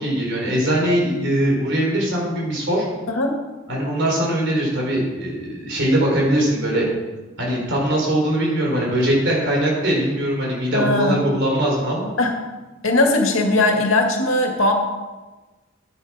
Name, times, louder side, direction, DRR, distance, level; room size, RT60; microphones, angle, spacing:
voice 1, 0.0-2.8 3.7-6.8 7.4-12.1, right 1 dB, 55° right, -2 dB, 4.3 m, -21 dB
voice 2, 10.7-11.2 12.2-12.3 12.8-14.7, left 2 dB, 75° left, 2 dB, 2.1 m, -19 dB
11.0 x 10.0 x 5.0 m, 1.2 s
head